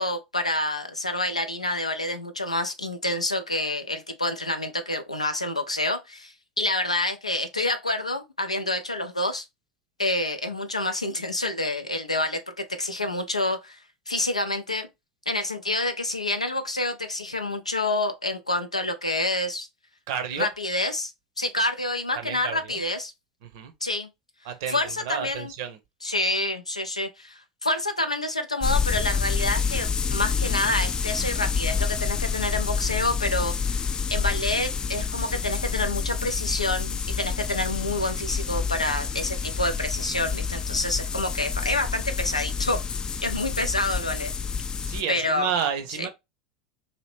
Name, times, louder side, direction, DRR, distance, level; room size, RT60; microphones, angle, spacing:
voice 1, 0.0-9.4 10.0-13.8 14.1-14.9 15.3-19.7 20.4-21.1 21.4-23.1 23.8-24.1 24.7-25.5 26.0-33.8 34.1-42.8 43.2-44.3 45.1-45.5 46.0-46.1, left 2 dB, 85° left, 0.4 m, -28 dB
voice 2, 20.1-20.5 22.1-22.8 23.4-23.7 24.4-25.8 44.8-46.1, right 8 dB, 55° right, 0.6 m, -31 dB
sound 1, 28.6-45.0, left 5 dB, 20° left, 0.3 m, -28 dB
2.8 x 2.7 x 3.2 m
figure-of-eight pair, 75°, 3 cm